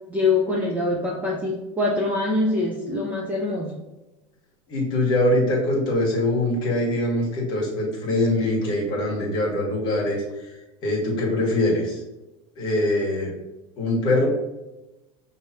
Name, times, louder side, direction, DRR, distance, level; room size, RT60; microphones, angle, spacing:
voice 1, 0.1-3.8, left 2 dB, 10° right, -3 dB, 0.4 m, -24 dB
voice 2, 4.7-10.5 10.8-12.0 12.5-13.3 13.8-14.3, left 1 dB, 30° left, -3 dB, 1.5 m, -23 dB
5.7 x 3.1 x 2.9 m, 1.0 s
supercardioid pair, 180°, 15 cm